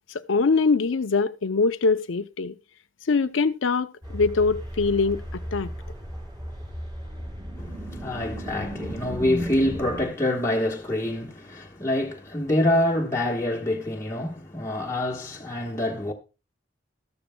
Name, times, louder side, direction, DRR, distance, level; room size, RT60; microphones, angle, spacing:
voice 1, 0.1-2.5 3.1-5.7, left 4 dB, 85° left, 0.6 m, -23 dB
sound 1, 4.0-10.1, equal, 25° right, 4.3 m, -35 dB
voice 2, 7.6-16.1, left 1 dB, 15° left, 1.3 m, -26 dB
13.0 x 13.0 x 2.2 m
head